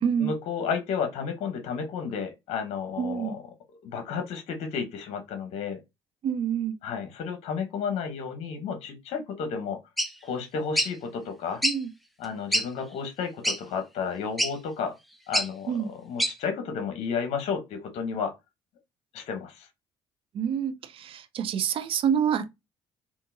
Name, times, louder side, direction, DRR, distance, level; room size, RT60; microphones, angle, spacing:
voice 1, 0.2-3.4 3.8-5.8 6.8-9.8 10.2-11.6 12.2-14.9 15.3-18.3 19.1-19.7, left 6 dB, 70° left, 0.9 m, -32 dB
voice 2, 3.0-3.4 6.2-6.7 11.6-11.9 15.7-15.9 20.4-22.5, right 8 dB, 55° right, 0.4 m, -27 dB
sound 1, 10.0-10.1 10.8-10.9 11.6-11.8 12.2-12.3 12.5-12.7 13.4-13.6 14.4-14.5 15.3-15.5 16.2-16.3, equal, ahead, 0.6 m, -24 dB
3.7 x 2.5 x 2.6 m
supercardioid pair, 70°, 11 cm